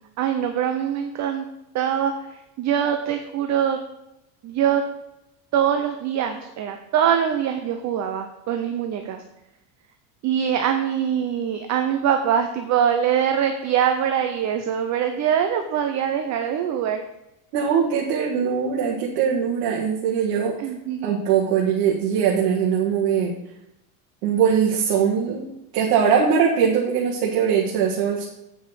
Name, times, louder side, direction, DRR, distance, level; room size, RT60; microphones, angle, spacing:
voice 1, 0.2-1.5 1.7-3.8 4.4-4.8 5.5-9.2 10.2-17.0 20.6-21.2, right 9 dB, 35° right, 6 dB, 0.7 m, -23 dB
voice 2, 17.5-20.5 21.0-23.3 24.2-25.4 25.7-28.3, right 7 dB, 80° right, -2 dB, 1.8 m, -21 dB
8.3 x 5.6 x 6.4 m, 0.90 s
cardioid pair, 150°, 47 cm